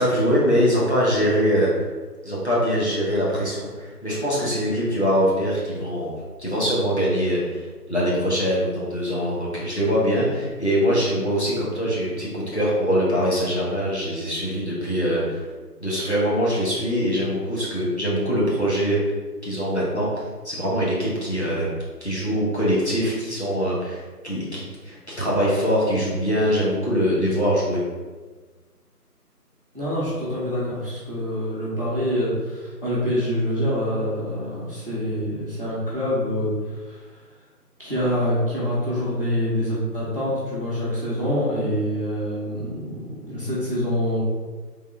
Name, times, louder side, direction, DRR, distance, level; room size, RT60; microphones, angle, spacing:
voice 1, 0.0-1.9 2.2-7.6 7.9-15.5 15.8-19.0 19.4-21.7 22.0-27.8, equal, 45° left, -7 dB, 1.0 m, -23 dB
voice 2, 29.7-37.0 37.8-44.2, equal, 35° right, -8 dB, 1.0 m, -26 dB
3.6 x 2.6 x 3.3 m, 1.4 s
figure-of-eight pair, 180°, 48 cm